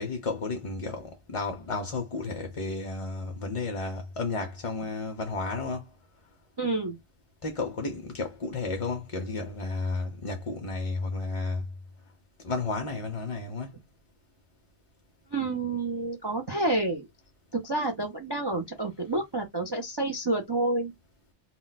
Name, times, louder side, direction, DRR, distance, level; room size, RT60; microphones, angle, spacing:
voice 1, 0.0-5.9 7.4-11.6 12.4-13.8, left 3 dB, 45° left, 0.4 m, -32 dB
voice 2, 6.6-7.0 15.3-17.1 17.5-20.9, right 2 dB, 35° right, 0.4 m, -29 dB
2.2 x 2.2 x 3.8 m
omnidirectional pair, 1.2 m